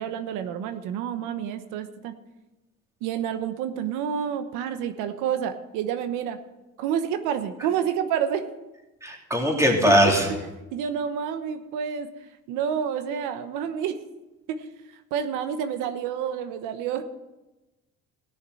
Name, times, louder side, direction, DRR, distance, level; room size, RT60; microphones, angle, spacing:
voice 1, 0.0-2.2 3.0-6.4 6.8-8.5 9.4-9.5 9.8-10.2 10.7-14.0 14.5-17.0, right 8 dB, 90° right, 9 dB, 1.1 m, -29 dB
voice 2, 9.0-10.3, equal, 10° right, 0 dB, 3.0 m, -20 dB
17.5 x 6.7 x 7.7 m, 1.1 s
cardioid pair, 120°, 30 cm